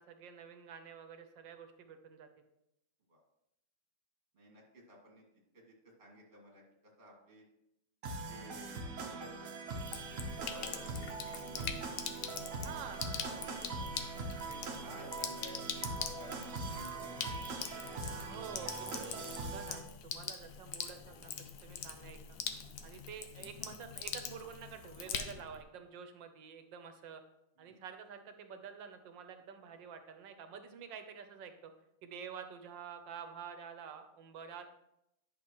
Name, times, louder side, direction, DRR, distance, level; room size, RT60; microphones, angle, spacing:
voice 1, 0.0-2.3 12.6-13.1 18.2-21.3 21.6-22.2 22.8-27.2 27.6-31.7 32.0-34.7, right 7 dB, 85° right, 7 dB, 1.5 m, -49 dB
voice 2, 4.3-5.3 5.5-7.4 8.3-9.4 10.3-13.0 13.2-14.1 14.5-15.6 16.2-18.3 18.9-19.3 22.8-23.1 27.6-27.8, equal, 30° right, -2 dB, 2.0 m, -55 dB
sound 1, 8.0-19.8, right 3 dB, 55° right, 1.2 m, -42 dB
Sink (filling or washing), 9.7-25.6, left 7 dB, 65° left, 1.2 m, -43 dB
10.0 x 6.0 x 3.0 m, 0.82 s
omnidirectional pair, 1.9 m